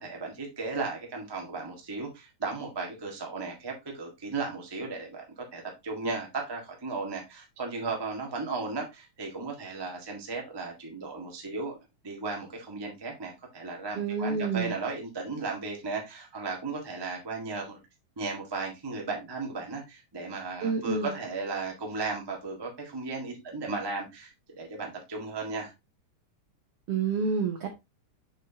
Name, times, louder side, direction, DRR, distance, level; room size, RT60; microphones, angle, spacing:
voice 1, 0.0-11.8 12.0-17.8 18.2-25.7, right 3 dB, 25° right, 0.4 m, -35 dB
voice 2, 13.9-14.7 20.6-21.1 26.9-27.7, right 5 dB, 75° right, 1.3 m, -28 dB
6.6 x 6.3 x 2.8 m
omnidirectional pair, 3.9 m